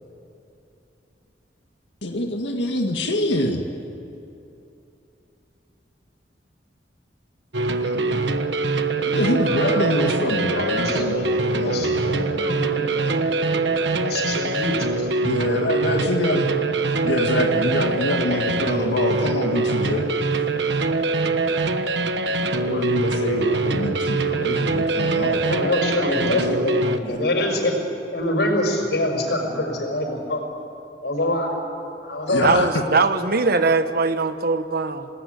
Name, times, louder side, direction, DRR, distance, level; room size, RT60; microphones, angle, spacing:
voice 1, 2.0-3.6 7.8-8.3 9.0-12.4 15.2-16.5 17.0-20.1 22.7-25.4 27.1-27.2 32.3-32.8, left 1 dB, 85° left, 2 dB, 2.0 m, -25 dB
sound 1, 7.5-27.0, right 3 dB, 80° right, 1.3 m, -23 dB
voice 2, 9.0-15.1 25.4-27.8 28.1-30.4 31.0-31.5 32.0-32.6, left 1 dB, 65° left, 3 dB, 5.8 m, -26 dB
voice 3, 32.4-35.1, right 3 dB, 55° right, 10 dB, 1.2 m, -21 dB
27.5 x 19.5 x 9.5 m, 2.8 s
head